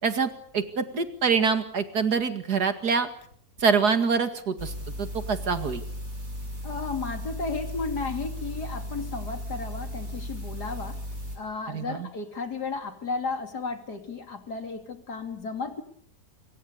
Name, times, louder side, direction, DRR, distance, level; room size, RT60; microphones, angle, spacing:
voice 1, 0.0-3.1 3.6-4.7 5.0-5.8 11.7-12.1, right 5 dB, 80° right, 9 dB, 2.6 m, -25 dB
sound 1, 4.6-11.4, equal, 55° right, 7.5 m, -36 dB
voice 2, 6.6-11.0 11.4-15.8, left 4 dB, 90° left, 6 dB, 3.5 m, -34 dB
25.5 x 23.5 x 6.9 m, 0.64 s
omnidirectional pair, 1.7 m